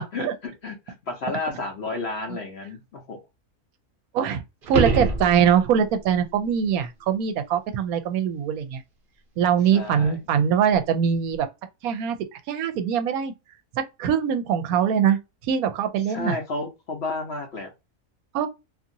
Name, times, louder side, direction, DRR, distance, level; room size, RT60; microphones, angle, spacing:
voice 1, 0.0-3.2 9.7-10.2 14.7-14.8 16.1-17.7, left 3 dB, 55° left, 0.8 m, -32 dB
voice 2, 4.1-8.8 9.4-11.5 11.8-12.2 12.5-13.3 13.8-15.2 15.5-16.4 18.3-18.5, right 8 dB, 80° right, 1.0 m, -22 dB
sound 1, 4.6-5.9 10.7-10.8, right 3 dB, 45° right, 0.8 m, -25 dB
2.8 x 2.7 x 2.5 m
omnidirectional pair, 1.5 m